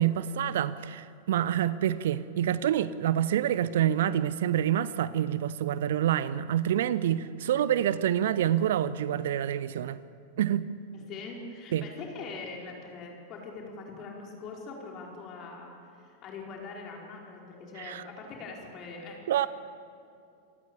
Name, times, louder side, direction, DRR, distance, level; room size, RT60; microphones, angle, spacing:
voice 1, 0.0-10.0 10.4-10.7 11.7-11.8 17.8-18.0 19.3-19.5, right 11 dB, 60° right, 0.7 m, -27 dB
voice 2, 10.9-19.2, left 4 dB, 35° left, 4.8 m, -42 dB
27.5 x 18.5 x 7.1 m
figure-of-eight pair, 90°, 0 cm